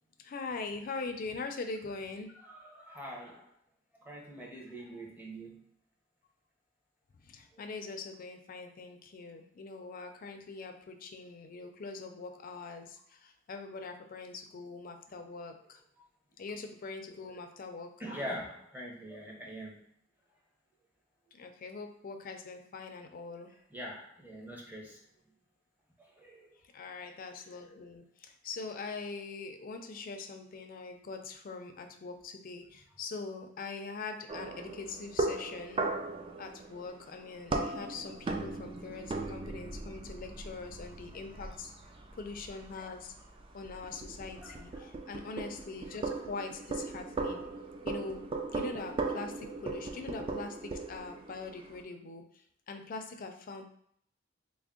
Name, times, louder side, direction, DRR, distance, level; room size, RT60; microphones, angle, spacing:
voice 1, 0.2-2.3 4.2-4.3 7.2-15.8 16.4-17.9 21.3-23.5 26.7-35.9 36.4-41.7 42.1-43.1 43.5-47.4 47.8-48.2 48.5-53.7, left 4 dB, 45° left, 5 dB, 0.4 m, -42 dB
voice 2, 2.4-3.4 4.0-5.6 18.0-19.8 23.7-25.0 26.2-26.5 44.4-44.6, equal, 10° right, -3 dB, 0.7 m, -43 dB
sound 1, 34.3-51.8, right 3 dB, 25° right, 0.3 m, -38 dB
3.5 x 2.0 x 3.6 m, 0.66 s
head